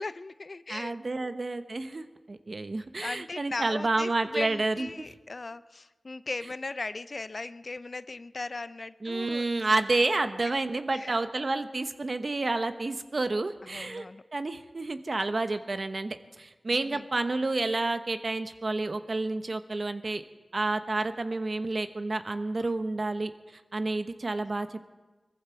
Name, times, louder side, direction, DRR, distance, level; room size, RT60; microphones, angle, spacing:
voice 1, 0.0-1.3 3.0-9.4 10.9-11.1 13.6-14.2 16.7-17.1 22.6-22.7, left 3 dB, 60° left, 15 dB, 0.4 m, -38 dB
voice 2, 0.7-5.0 9.0-14.1 14.3-20.2 20.5-23.3 23.7-24.8, right 2 dB, 55° right, 9 dB, 1.0 m, -30 dB
20.5 x 14.5 x 4.6 m, 1.2 s
cardioid pair, 50°, 0 cm